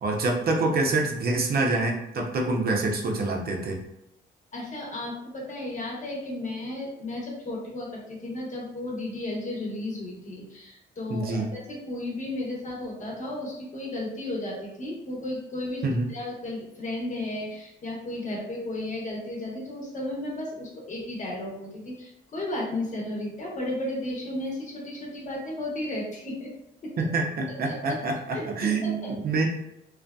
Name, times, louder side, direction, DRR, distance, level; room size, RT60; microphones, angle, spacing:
voice 1, 0.0-3.8 11.1-11.5 15.8-16.1 27.0-29.4, right 3 dB, 50° right, 1 dB, 0.6 m, -26 dB
voice 2, 4.5-15.8 16.1-26.5 26.8-26.9 27.6-28.0 28.3-29.1, left 1 dB, 40° left, -3 dB, 1.0 m, -34 dB
2.6 x 2.4 x 2.2 m, 0.83 s
cardioid pair, 90°, 20 cm